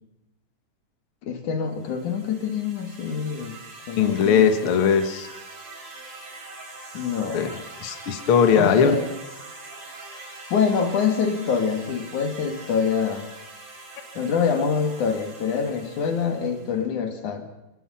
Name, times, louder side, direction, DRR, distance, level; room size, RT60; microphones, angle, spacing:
voice 1, 1.2-3.6 3.9-4.5 6.9-7.6 8.5-9.1 10.5-13.3 14.2-17.4, left 6 dB, 50° left, 6 dB, 3.4 m, -25 dB
sound 1, 1.7-16.8, right 3 dB, 40° right, 5.4 m, -43 dB
voice 2, 4.0-5.3 7.3-9.0, left 7 dB, 80° left, 9 dB, 1.2 m, -20 dB
29.5 x 18.5 x 5.8 m, 0.94 s
omnidirectional pair, 4.9 m